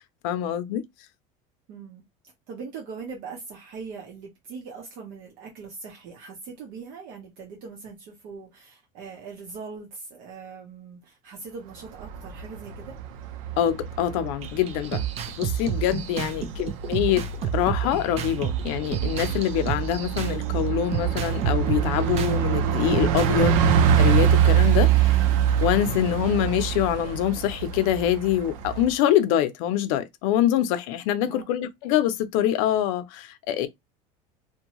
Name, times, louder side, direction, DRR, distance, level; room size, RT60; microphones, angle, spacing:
voice 1, 0.2-0.8 13.6-15.1 15.4-17.3 17.5-23.6 24.0-25.3 25.6-33.7, left 11 dB, 75° left, 0.5 m, -25 dB
voice 2, 1.7-2.0 2.5-13.0 16.3-16.7 23.3-23.6 31.3-31.5, right 5 dB, 60° right, 0.9 m, -41 dB
Bus, 11.8-28.9, right 9 dB, 90° right, 0.6 m, -25 dB
sound 1, 14.4-20.4 20.9-22.4 22.9-23.8, right 10 dB, 35° right, 0.4 m, -30 dB
2.6 x 2.2 x 2.9 m
cardioid pair, 150°, 17 cm